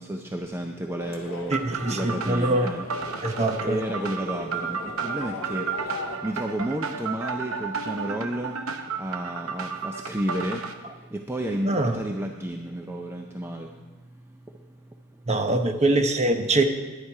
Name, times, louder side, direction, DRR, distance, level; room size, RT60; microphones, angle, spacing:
voice 1, 0.0-3.4 3.6-8.6 9.0-15.4, right 1 dB, 10° right, 3 dB, 0.5 m, -32 dB
sound 1, 1.0-6.2, left 2 dB, 60° left, 1.2 m, -39 dB
voice 2, 1.5-2.7 3.2-3.8 11.7-12.0 15.3-16.6, right 2 dB, 30° right, 6 dB, 0.8 m, -23 dB
sound 2, 1.5-10.7, right 5 dB, 65° right, 0.8 m, -33 dB
10.5 x 10.0 x 4.8 m, 1.3 s
head